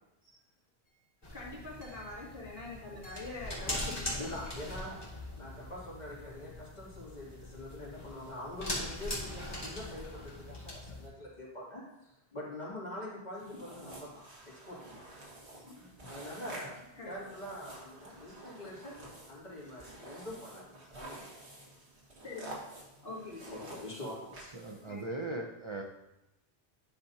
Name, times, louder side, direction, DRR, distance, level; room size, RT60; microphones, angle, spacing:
Hammer / Chink clink, 0.9-1.0 1.8-2.2 3.0-3.5 4.2-4.7, right 3 dB, 80° left, 2.1 m, -58 dB
sound 1, 1.2-11.1, left 1 dB, 20° left, 1.8 m, -41 dB
voice 1, 1.3-4.3 13.5-13.9 15.6-16.1 17.0-17.1 22.2-22.5 23.0-23.7 24.9-25.1, left 3 dB, 60° left, -6 dB, 2.4 m, -44 dB
voice 2, 4.1-5.0 5.4-15.0 15.6-16.8 17.0-19.0 19.3-21.2 23.0-23.1 23.5-24.5, left 1 dB, 40° left, -7 dB, 2.7 m, -44 dB
sound 2, 13.3-25.0, right 2 dB, 75° right, 2.0 m, -50 dB
voice 3, 24.5-25.8, right 2 dB, 40° right, 1 dB, 0.5 m, -38 dB
10.5 x 5.8 x 2.7 m, 0.90 s
omnidirectional pair, 1.1 m